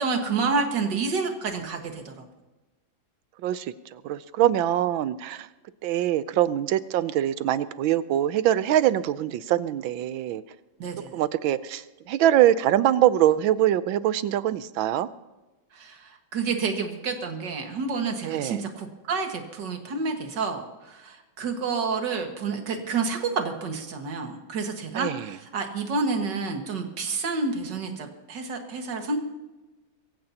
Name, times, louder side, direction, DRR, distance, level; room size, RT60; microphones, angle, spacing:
voice 1, 0.0-2.2 10.8-11.1 15.7-29.2, right 4 dB, 60° right, 4 dB, 2.3 m, -29 dB
voice 2, 3.4-5.5 5.8-10.4 11.1-15.1 18.2-18.6 25.0-25.4, right 12 dB, 80° right, 15 dB, 1.4 m, -23 dB
23.5 x 15.0 x 2.9 m, 1.1 s
omnidirectional pair, 2.2 m